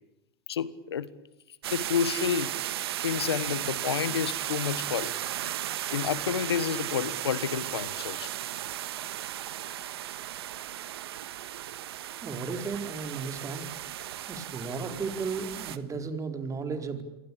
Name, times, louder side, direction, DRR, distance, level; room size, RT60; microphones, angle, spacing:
voice 1, 0.5-1.1 1.7-2.6 3.0-5.2 5.9-8.3, left 8 dB, 90° left, 16 dB, 1.5 m, -30 dB
sound 1, 1.6-15.8, right 12 dB, 75° right, 1.6 m, -35 dB
voice 2, 12.2-13.7 14.3-17.0, right 4 dB, 25° right, 6 dB, 4.6 m, -34 dB
28.5 x 23.5 x 8.8 m, 0.95 s
hypercardioid pair, 95°, 13 cm